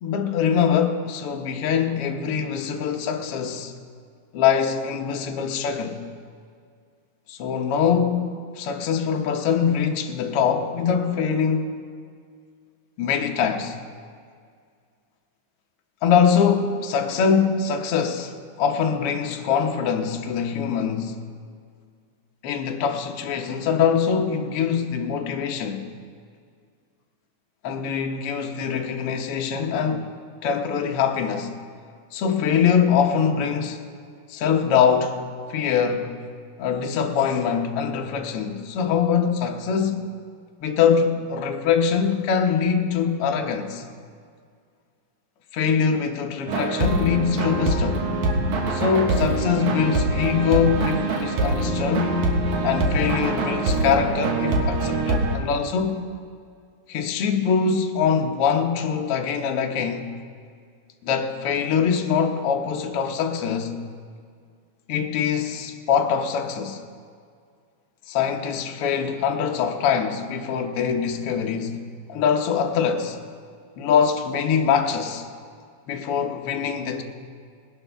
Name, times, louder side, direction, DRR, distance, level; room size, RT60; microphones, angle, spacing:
voice 1, 0.0-3.7 4.3-6.0 7.3-11.7 13.0-13.8 16.0-21.2 22.4-25.8 27.6-30.1 30.4-31.5 32.1-33.9 34.3-35.2 35.5-36.1 36.6-40.1 40.6-43.8 45.5-48.1 48.7-52.2 52.6-56.0 56.9-60.1 61.0-63.7 64.9-66.8 68.1-71.8 72.1-73.2 73.8-75.3 75.9-77.0, left 7 dB, 65° left, 1.5 m, -23 dB
sound 1, 46.5-55.4, right 2 dB, 75° right, 2.7 m, -24 dB
20.5 x 11.5 x 3.4 m
omnidirectional pair, 3.4 m